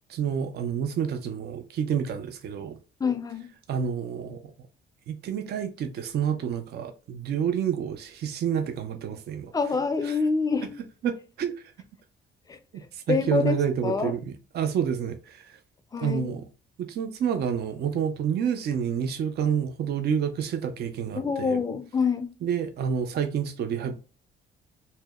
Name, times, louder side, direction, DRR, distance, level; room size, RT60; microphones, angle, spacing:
voice 1, 0.1-2.8 3.7-4.5 5.1-9.5 10.0-10.2 11.0-11.6 12.7-15.6 16.0-16.4 16.8-21.6 22.4-23.9, right 8 dB, 55° right, 0.4 m, -29 dB
voice 2, 3.0-3.5 9.5-10.7 12.5-12.6 13.1-13.6 13.8-14.1 15.9-16.3 21.2-22.3, left 5 dB, 20° left, 0.4 m, -26 dB
2.7 x 2.0 x 2.3 m
cardioid pair, 90°, 20 cm